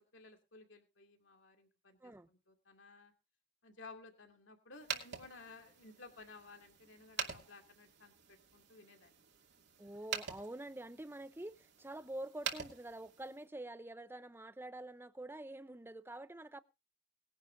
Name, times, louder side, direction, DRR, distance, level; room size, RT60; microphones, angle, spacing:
voice 1, 0.0-3.1 3.6-9.2, left 3 dB, 65° left, 2.5 m, -56 dB
sound 1, 4.7-13.5, right 7 dB, 60° right, 2.6 m, -46 dB
voice 2, 9.8-16.6, right 1 dB, 10° right, 0.6 m, -47 dB
20.5 x 11.0 x 2.6 m
head